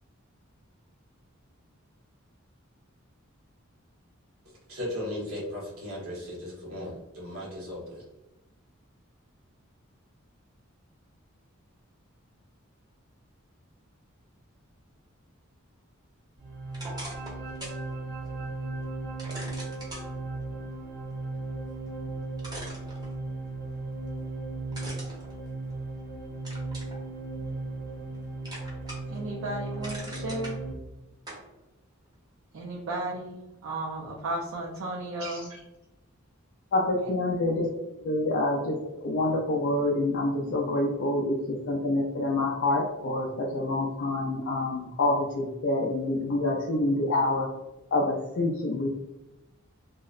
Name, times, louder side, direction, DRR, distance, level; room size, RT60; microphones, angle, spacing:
voice 1, 4.7-8.0, left 1 dB, 85° right, 1.0 m, -36 dB
sound 1, 16.4-30.7, right 2 dB, 50° right, 0.8 m, -36 dB
sound 2, 16.7-17.8 18.2-18.3 19.2-20.1 21.9-22.0 22.4-23.5 24.7-26.0 26.4-27.0 27.5-28.2 28.4-29.2 29.5-30.5 31.3-31.4, right 1 dB, 20° right, 0.6 m, -42 dB
voice 2, 29.1-30.6 32.5-35.6, right 1 dB, 70° right, 0.4 m, -34 dB
voice 3, 36.7-37.7 38.0-47.5 47.9-48.9, left 2 dB, 55° left, 0.3 m, -27 dB
2.7 x 2.0 x 2.3 m
head